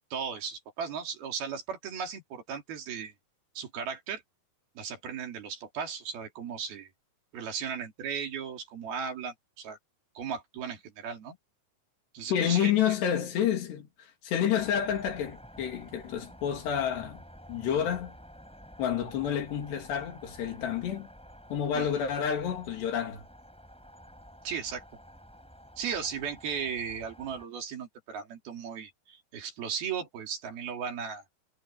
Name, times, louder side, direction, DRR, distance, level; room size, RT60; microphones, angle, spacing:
voice 1, 0.1-3.1 3.5-4.2 4.8-6.9 7.3-9.8 10.1-11.4 12.1-12.7 21.7-21.9 24.4-24.8 25.8-31.2, right 7 dB, 65° right, 4.9 m, -36 dB
voice 2, 12.3-17.2 17.5-18.1 18.8-21.1 21.5-23.2, left 9 dB, 80° left, 4.9 m, -29 dB
sound 1, 14.6-27.5, equal, ahead, 5.7 m, -51 dB
omnidirectional pair, 4.7 m